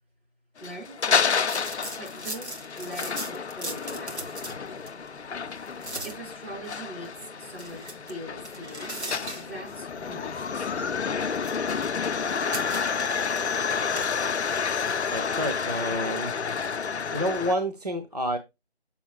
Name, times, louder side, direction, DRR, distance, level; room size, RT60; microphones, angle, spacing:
sound 1, 0.6-17.5, left 6 dB, 85° left, 0.5 m, -30 dB
voice 1, 0.6-1.4 2.0-4.3 6.0-9.0 9.4-11.2, equal, 65° right, 3.1 m, -42 dB
sound 2, 1.4-14.3, right 1 dB, 85° right, 2.3 m, -41 dB
voice 2, 15.1-16.3 17.1-18.4, equal, 40° right, 0.6 m, -29 dB
6.9 x 6.7 x 2.9 m
figure-of-eight pair, 170°, 33 cm